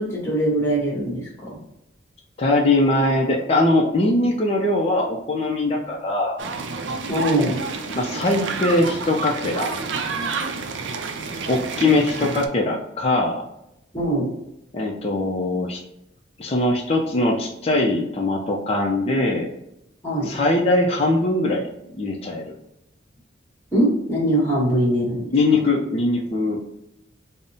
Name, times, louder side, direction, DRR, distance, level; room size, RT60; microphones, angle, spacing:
voice 1, 0.0-1.6 7.1-7.6 11.8-12.0 13.9-14.3 20.0-20.3 23.7-25.3, right 1 dB, 15° left, -5 dB, 1.2 m, -22 dB
voice 2, 2.4-6.4 8.0-9.7 11.5-13.4 14.7-15.8 16.4-19.5 20.2-21.7 21.9-22.5 25.3-26.6, left 2 dB, 30° left, -1 dB, 0.4 m, -21 dB
sound 1, 6.4-12.5, right 4 dB, 75° right, 0.4 m, -29 dB
5.2 x 2.0 x 2.6 m, 0.82 s
head